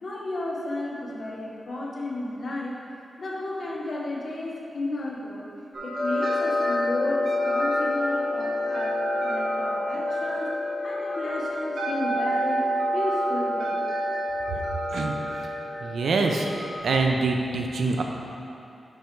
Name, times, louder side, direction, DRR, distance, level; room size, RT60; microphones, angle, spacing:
voice 1, 0.0-2.8 3.2-5.5 5.8-10.5 10.8-13.8, left 2 dB, 55° left, -3 dB, 1.1 m, -33 dB
sound 1, 5.7-16.8, left 1 dB, 65° right, 1.4 m, -27 dB
voice 2, 15.8-16.5 16.8-18.0, right 3 dB, 80° right, 2 dB, 0.6 m, -24 dB
6.1 x 5.3 x 4.6 m, 2.7 s
wide cardioid pair, 135°, 0 cm